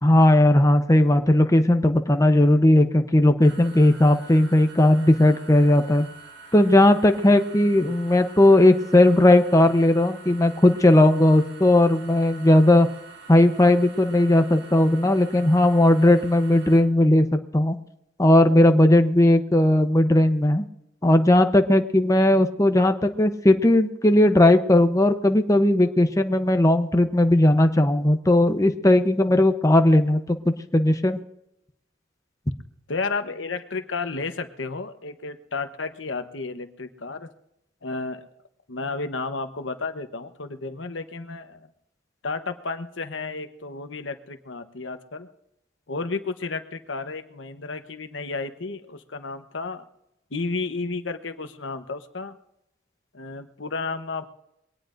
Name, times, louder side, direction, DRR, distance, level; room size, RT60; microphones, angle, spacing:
voice 1, 0.0-6.1 6.5-12.9 13.3-17.3 17.5-17.8 18.2-20.6 21.0-31.2, left 1 dB, 20° left, 7 dB, 0.8 m, -17 dB
sound 1, 3.4-16.8, right 4 dB, 70° right, 3.5 m, -46 dB
voice 2, 32.9-37.3 37.8-38.3 38.7-41.7 42.2-45.3 45.9-49.8 50.3-52.4 53.1-54.2, left 3 dB, 80° left, 8 dB, 1.1 m, -32 dB
22.5 x 18.0 x 2.6 m, 0.82 s
head